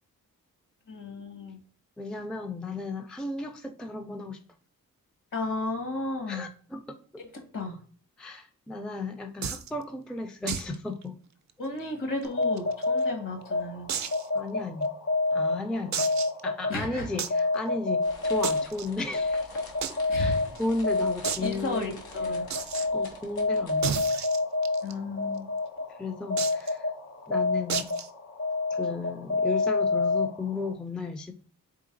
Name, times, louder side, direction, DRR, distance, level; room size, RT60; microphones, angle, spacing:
voice 1, 0.9-1.6 5.3-6.5 7.3-7.8 11.6-13.9 16.7-17.1 20.1-20.4 21.4-22.5 24.8-25.5, left 2 dB, 60° left, 2 dB, 1.6 m, -33 dB
voice 2, 2.0-4.4 6.3-6.8 7.1-7.2 8.2-11.2 14.3-14.9 15.3-16.1 16.4-19.5 19.9-21.9 22.4-22.5 22.9-24.0 25.9-26.9 27.3-27.9 28.7-31.3, left 2 dB, ahead, 6 dB, 0.4 m, -34 dB
sound 1, 9.4-9.7 10.5-10.7 11.0-11.1 11.5-11.6 12.2-13.0 13.9-14.3 14.8-14.9 15.9-16.4 17.2-17.4 18.4-18.9 19.8-19.9 20.2-20.3 20.6-20.7 21.2-21.5 22.5-22.9 23.8-24.9 26.4-26.7 27.7-28.1, right 8 dB, 50° right, 0.5 m, -32 dB
sound 2, 12.2-30.7, left 3 dB, 45° left, 0.8 m, -29 dB
sound 3, 18.0-24.0, left 3 dB, 90° left, 1.1 m, -49 dB
3.8 x 3.6 x 2.5 m, 0.44 s
cardioid pair, 70°, 36 cm